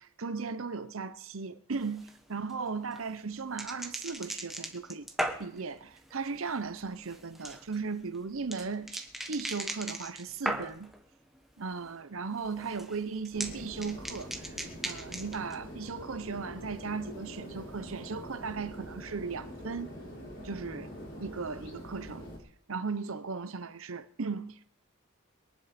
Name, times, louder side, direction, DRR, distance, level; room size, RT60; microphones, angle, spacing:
voice 1, 0.0-5.1 5.4-10.9 11.6-19.9 20.4-20.9 21.2-22.3 22.7-24.6, right 4 dB, 75° right, 0.8 m, -37 dB
sound 1, 1.7-11.0 11.3-11.9 12.2-15.5, right 1 dB, ahead, 1.2 m, -39 dB
sound 2, 13.3-22.4, equal, 55° left, 5.0 m, -45 dB
22.5 x 11.0 x 4.4 m
head